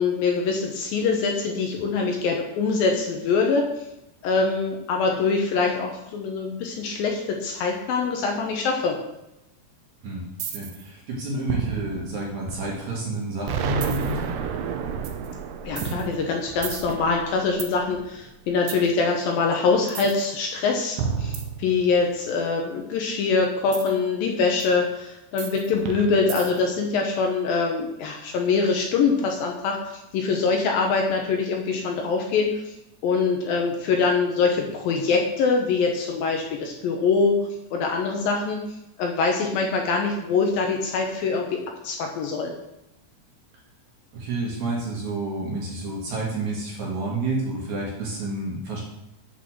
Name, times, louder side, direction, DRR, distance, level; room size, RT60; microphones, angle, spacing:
voice 1, 0.0-3.7 4.2-9.0 15.6-32.7 33.0-38.7 39.0-42.5, left 4 dB, 70° left, 2 dB, 2.5 m, -24 dB
sound 1, 10.4-10.9 11.5-13.1 13.8-14.2 15.0-15.3 15.8-17.7 18.7-18.9 19.9-20.2 21.0-22.1 23.7-23.9 24.6-24.7 25.4-26.8, right 7 dB, 75° right, 2.0 m, -32 dB
voice 2, 10.5-14.3 44.1-48.8, right 2 dB, 50° right, -3 dB, 3.0 m, -29 dB
Explosion, 13.5-18.3, right 7 dB, 90° right, 2.8 m, -31 dB
8.5 x 5.5 x 6.2 m, 0.89 s
omnidirectional pair, 4.7 m